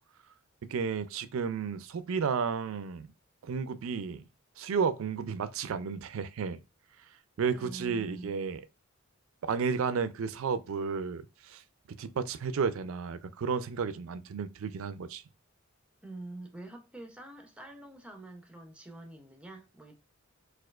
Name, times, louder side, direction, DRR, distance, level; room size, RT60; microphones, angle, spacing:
voice 1, 0.6-3.1 3.4-4.2 4.6-6.6 7.4-8.6 9.4-11.6 11.9-15.2, right 5 dB, 70° right, 0.4 m, -32 dB
voice 2, 7.5-8.3 16.0-19.9, right 2 dB, 5° right, 0.6 m, -46 dB
4.2 x 2.4 x 2.4 m
head